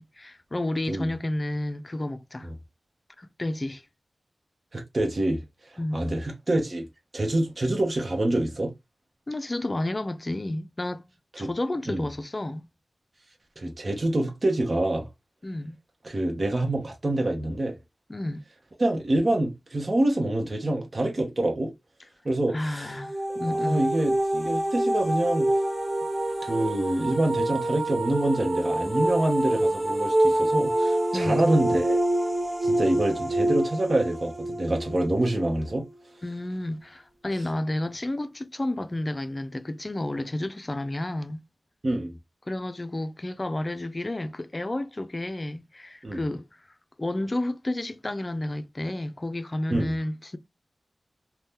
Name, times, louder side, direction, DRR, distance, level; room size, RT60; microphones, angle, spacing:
voice 1, 0.0-2.5 3.2-3.9 5.8-6.0 9.3-11.1 11.4-12.7 15.4-15.8 18.1-18.4 22.5-23.9 31.1-31.4 36.2-41.4 42.5-46.5 47.0-50.4, left 1 dB, 35° left, 0.5 m, -31 dB
voice 2, 4.7-5.4 5.7-6.9 7.1-8.7 11.4-11.5 11.9-12.0 13.6-15.1 16.0-17.7 18.8-21.7 22.2-22.9 23.5-25.5 26.4-32.0 32.6-35.8 41.8-42.1 46.0-46.2 49.7-49.9, right 1 dB, 50° right, 0.9 m, -26 dB
sound 1, 22.9-35.8, right 1 dB, 20° right, 0.9 m, -26 dB
2.7 x 2.3 x 3.5 m
cardioid pair, 50°, 0 cm